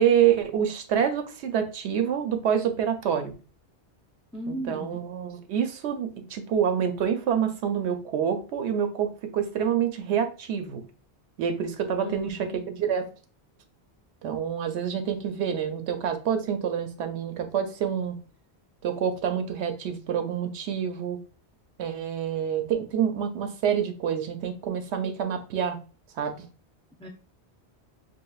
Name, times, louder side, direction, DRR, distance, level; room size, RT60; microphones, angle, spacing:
voice 1, 0.0-3.4 4.5-10.8 11.4-13.1 14.2-18.2 18.8-21.2 21.8-25.8 26.1-26.3, right 8 dB, 85° right, 0.9 m, -27 dB
voice 2, 4.3-5.0 12.0-12.6 27.0-27.1, equal, 5° left, 0.5 m, -36 dB
4.6 x 2.6 x 2.3 m
omnidirectional pair, 1.1 m